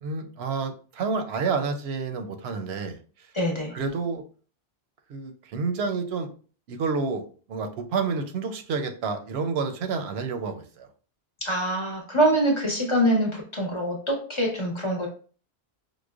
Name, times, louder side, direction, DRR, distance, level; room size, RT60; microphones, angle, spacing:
voice 1, 0.0-3.0 3.7-4.2 5.1-6.3 6.7-10.9, right 4 dB, 85° right, 7 dB, 0.8 m, -29 dB
voice 2, 3.3-3.7 11.4-15.1, right 1 dB, 30° left, -1 dB, 0.8 m, -24 dB
4.8 x 2.1 x 2.4 m, 0.39 s
omnidirectional pair, 1.1 m